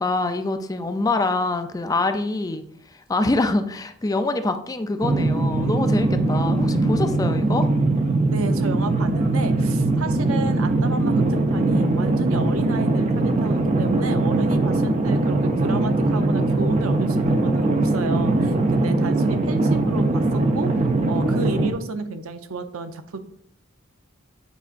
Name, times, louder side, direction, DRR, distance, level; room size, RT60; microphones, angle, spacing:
voice 1, 0.0-2.6 2.9-7.7, left 2 dB, 15° left, 8 dB, 0.4 m, -25 dB
sound 1, 5.0-21.7, right 2 dB, 30° right, 0.5 m, -21 dB
voice 2, 8.3-23.2, right 3 dB, 85° right, 9 dB, 0.6 m, -32 dB
8.1 x 4.9 x 2.5 m, 0.70 s
head